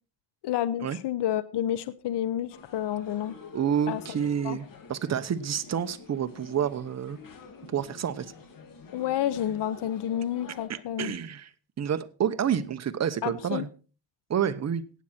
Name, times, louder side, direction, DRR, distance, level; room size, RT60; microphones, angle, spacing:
voice 1, 0.4-3.3 3.9-4.0 4.4-4.6 8.9-11.1 13.2-13.7, left 11 dB, 60° left, 15 dB, 0.9 m, -30 dB
sound 1, 2.5-10.7, left 5 dB, 45° left, 2.4 m, -48 dB
voice 2, 3.5-7.2 7.7-8.3 10.7-11.5 11.8-13.7 14.3-14.8, right 8 dB, 35° right, 11 dB, 0.9 m, -29 dB
17.5 x 7.7 x 4.3 m, 0.36 s
cardioid pair, 125°, 47 cm